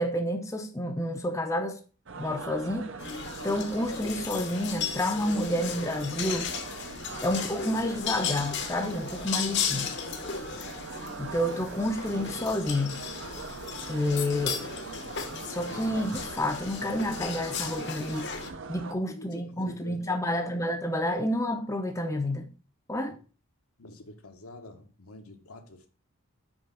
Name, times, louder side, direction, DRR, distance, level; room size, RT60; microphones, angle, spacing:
voice 1, 0.0-1.8 2.2-2.9 3.4-6.5 7.2-10.0 11.2-13.0 13.9-14.7 15.5-18.3 18.7-22.5 22.9-23.2, left 1 dB, 15° left, 0.6 m, -29 dB
sound 1, 2.1-18.9, right 4 dB, 55° right, 0.6 m, -42 dB
sound 2, 3.0-18.5, left 6 dB, 50° left, 0.9 m, -36 dB
voice 2, 19.1-20.6 23.1-23.2 23.8-25.9, left 2 dB, 80° left, 1.3 m, -47 dB
6.2 x 4.6 x 5.9 m
head